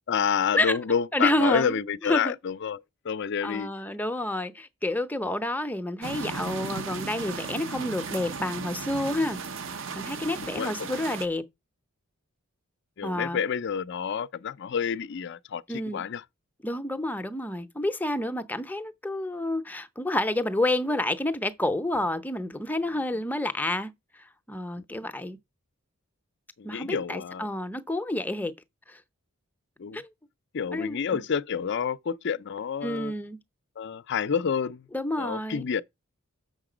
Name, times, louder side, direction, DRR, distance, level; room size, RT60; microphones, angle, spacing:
voice 1, 0.1-3.7 10.4-11.0 13.0-16.2 26.6-27.5 29.8-30.0 30.5-33.1 33.8-34.9 35.2-35.8, left 7 dB, 50° left, 0.4 m, -29 dB
voice 2, 1.1-2.4 3.4-9.4 9.9-11.4 13.0-13.4 15.7-16.0 16.6-23.9 24.5-25.4 26.6-28.5 28.9-29.0 29.9-30.1 30.7-31.2 32.8-33.4 34.9-35.7, left 1 dB, 10° left, 0.6 m, -29 dB
sound 1, 6.0-11.3, right 5 dB, 60° right, 0.8 m, -36 dB
6.8 x 6.5 x 5.0 m
head